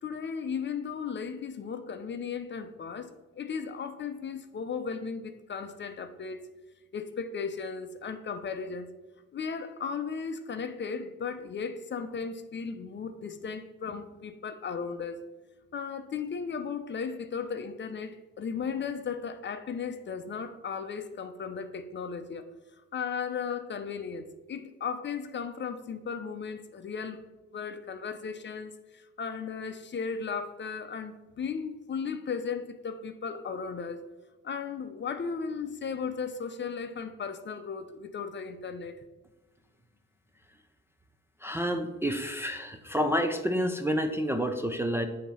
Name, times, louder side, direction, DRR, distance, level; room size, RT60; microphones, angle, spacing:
voice 1, 0.0-6.4 6.9-8.9 9.3-15.2 15.7-22.4 22.9-27.2 27.5-34.0 34.4-39.0, left 6 dB, 40° left, 9 dB, 0.6 m, -36 dB
voice 2, 41.4-45.1, equal, 10° right, 4 dB, 0.4 m, -29 dB
7.0 x 2.9 x 5.4 m, 1.1 s
cardioid pair, 90°, 30 cm